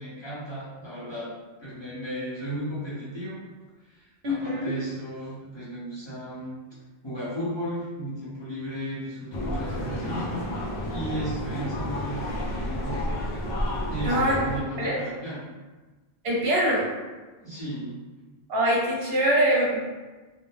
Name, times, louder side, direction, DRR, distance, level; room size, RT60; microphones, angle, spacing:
voice 1, 0.0-3.4 3.8-6.5 7.0-10.4 10.9-13.1 13.9-15.4 17.4-18.0, equal, 30° left, -11 dB, 0.8 m, -35 dB
voice 2, 4.2-4.7 14.0-14.4 14.8-15.0 16.2-16.9 18.5-19.9, right 1 dB, 75° right, -4 dB, 0.8 m, -23 dB
sound 1, 9.3-14.6, left 1 dB, 55° left, 0.6 m, -31 dB
2.3 x 2.1 x 3.1 m, 1.3 s
omnidirectional pair, 1.0 m